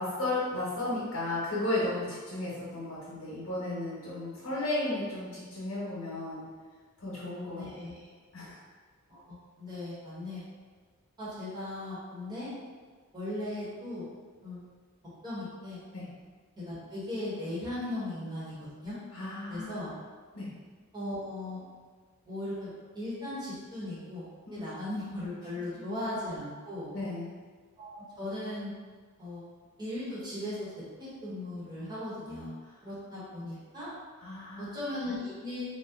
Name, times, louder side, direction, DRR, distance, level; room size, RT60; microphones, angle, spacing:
voice 1, 0.0-6.4 7.0-7.6 8.3-8.6 15.9-16.1 19.1-19.8 20.3-20.5 24.5-24.6 26.9-27.3 34.2-34.7, left 2 dB, 75° left, -8 dB, 0.9 m, -34 dB
voice 2, 7.5-8.1 9.1-10.4 11.2-12.5 13.1-14.1 14.4-14.6 15.2-15.8 16.6-19.0 19.5-19.9 20.9-21.6 22.3-22.7 22.9-24.2 24.5-26.9 27.8-28.7 29.2-29.4 29.8-30.7 31.0-32.5 32.8-33.9 34.6-35.6, left 1 dB, 20° right, -10 dB, 1.1 m, -37 dB
2.8 x 2.2 x 3.5 m, 1.5 s
head